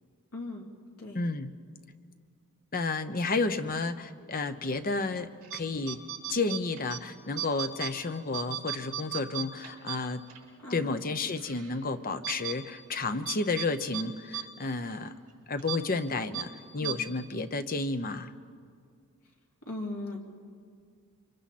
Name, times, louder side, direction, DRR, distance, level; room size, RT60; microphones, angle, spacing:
voice 1, 0.3-0.6 1.0-1.2 10.6-11.0 16.8-17.0 19.7-20.2, left 2 dB, 75° left, 1 dB, 2.8 m, -38 dB
voice 2, 1.1-1.5 2.7-6.0 6.3-10.2 10.7-15.1 15.5-18.3, left 3 dB, 40° left, 10 dB, 0.8 m, -31 dB
sound 1, 5.4-5.6 5.9-7.0 7.4-7.9 8.3-10.4 10.8-10.9 11.4-11.7 12.2-12.5 13.2-13.7 13.9-14.0 14.3-14.4 14.8-14.9 15.6-15.8 16.3-16.4 16.8-16.9, right 11 dB, 70° right, 5.3 m, -35 dB
28.5 x 24.0 x 4.3 m, 2.1 s
head